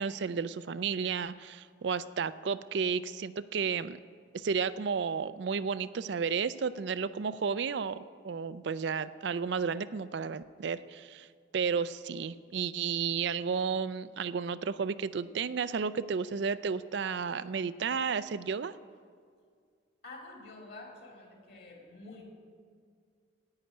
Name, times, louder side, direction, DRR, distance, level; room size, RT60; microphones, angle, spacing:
voice 1, 0.0-4.0 4.3-11.3 11.5-18.7, right 6 dB, 65° right, 14 dB, 0.4 m, -32 dB
voice 2, 20.0-22.3, left 2 dB, 55° left, 1 dB, 2.8 m, -48 dB
10.5 x 8.9 x 9.8 m, 2.1 s
head